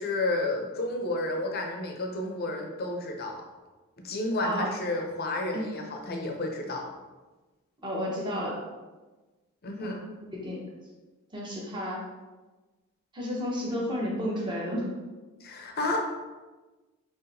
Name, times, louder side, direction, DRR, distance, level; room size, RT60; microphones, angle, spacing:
voice 1, 0.0-3.4 4.0-6.9 9.6-10.1 15.4-16.0, left 2 dB, 45° left, 2 dB, 0.7 m, -31 dB
voice 2, 7.8-8.6 9.8-10.0 10.3-10.6 11.3-12.0 13.1-14.9, equal, 20° right, -4 dB, 1.0 m, -31 dB
5.8 x 3.1 x 2.7 m, 1.2 s
head